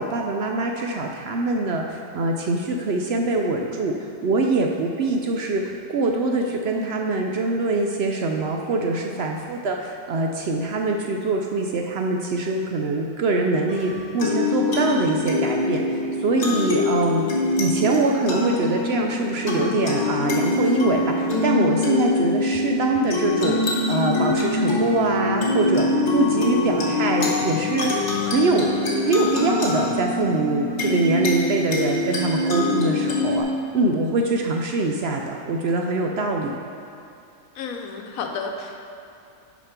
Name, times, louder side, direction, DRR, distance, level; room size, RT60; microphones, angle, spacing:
voice 1, 0.0-4.0 4.2-15.8 16.2-17.3 17.6-23.6 23.9-25.8 26.1-27.9 28.2-28.7 29.0-33.5 33.7-36.5, right 2 dB, 65° right, 1 dB, 0.7 m, -23 dB
sound 1, 13.7-33.4, left 2 dB, 55° left, 1.5 m, -24 dB
voice 2, 16.6-16.9 37.6-38.9, left 5 dB, 85° left, 3 dB, 1.1 m, -32 dB
6.5 x 5.1 x 5.8 m, 2.6 s
omnidirectional pair, 1.4 m